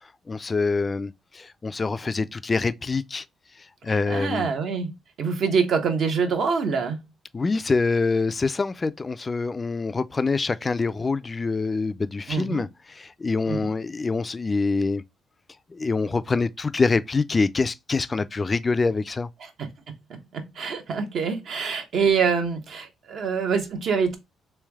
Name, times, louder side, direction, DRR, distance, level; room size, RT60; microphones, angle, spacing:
voice 1, 0.3-3.2 3.8-4.5 7.3-15.0 15.7-19.3, left 4 dB, 30° left, 0.3 m, -25 dB
voice 2, 3.9-7.0 12.3-12.7 13.5-13.7 19.4-19.7 20.3-24.2, right 5 dB, 65° right, 1.0 m, -25 dB
3.3 x 3.1 x 3.4 m
cardioid pair, 90°, 0 cm